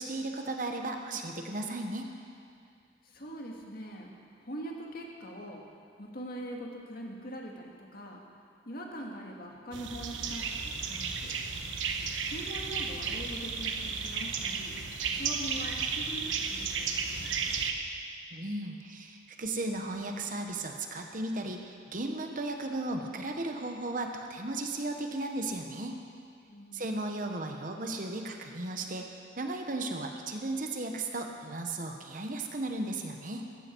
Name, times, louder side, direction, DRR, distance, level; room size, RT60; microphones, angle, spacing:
voice 1, 0.0-2.1 18.3-26.0 26.7-33.4, right 2 dB, 45° right, 3 dB, 1.1 m, -35 dB
voice 2, 3.0-4.1 4.4-5.6 6.0-8.2 8.7-11.4 12.3-14.8 15.1-17.5 26.5-27.1, equal, 50° left, 0 dB, 1.9 m, -42 dB
sound 1, 9.7-17.7, right 5 dB, 85° right, 1.1 m, -33 dB
15.0 x 14.5 x 4.6 m, 2.3 s
head